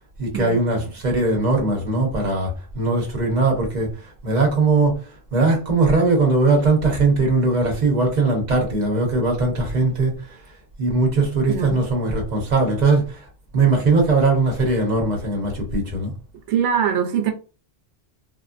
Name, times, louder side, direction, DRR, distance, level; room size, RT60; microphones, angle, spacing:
voice 1, 0.2-5.0 5.3-10.4 10.8-13.3 13.5-16.1, right 3 dB, 40° right, 1.1 m, -20 dB
voice 2, 11.5-11.8 16.5-17.3, right 8 dB, 85° right, 1.0 m, -22 dB
3.6 x 2.0 x 2.5 m
omnidirectional pair, 1.2 m